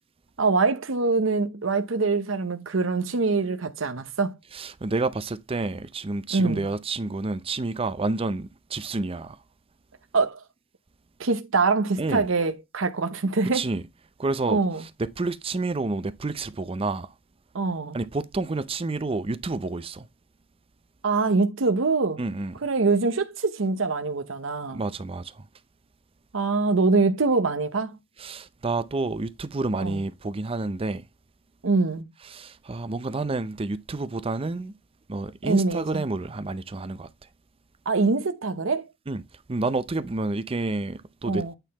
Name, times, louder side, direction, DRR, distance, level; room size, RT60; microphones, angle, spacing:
voice 1, 0.4-4.4 6.3-6.7 10.1-10.4 11.2-13.6 14.5-14.8 17.5-18.0 21.0-22.2 22.6-24.8 26.3-28.0 29.8-30.0 31.6-32.1 35.4-36.0 37.9-38.9 41.2-41.6, right 3 dB, 75° right, 0.8 m, -24 dB
voice 2, 4.5-9.4 12.0-12.2 13.5-13.8 14.2-14.6 15.0-17.1 17.9-20.1 22.2-22.5 24.7-25.4 28.2-31.0 32.3-34.7 35.1-37.1 39.1-39.2 39.5-41.5, right 3 dB, 30° right, 0.5 m, -29 dB
9.0 x 3.9 x 4.0 m
head